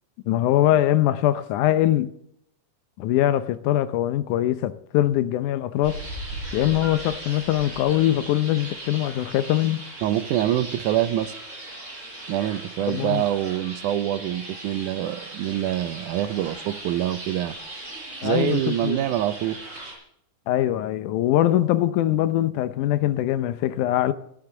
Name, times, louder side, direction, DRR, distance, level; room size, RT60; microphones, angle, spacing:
voice 1, 0.3-2.1 3.0-6.0 6.5-9.8 12.9-13.2 18.2-19.0 20.5-24.1, left 13 dB, 90° left, 2.2 m, -22 dB
sound 1, 5.8-19.9, right 1 dB, 20° right, 7.3 m, -38 dB
voice 2, 10.0-11.3 12.3-17.6 18.2-19.6, right 12 dB, 90° right, 2.2 m, -25 dB
14.5 x 13.0 x 3.8 m
omnidirectional pair, 3.4 m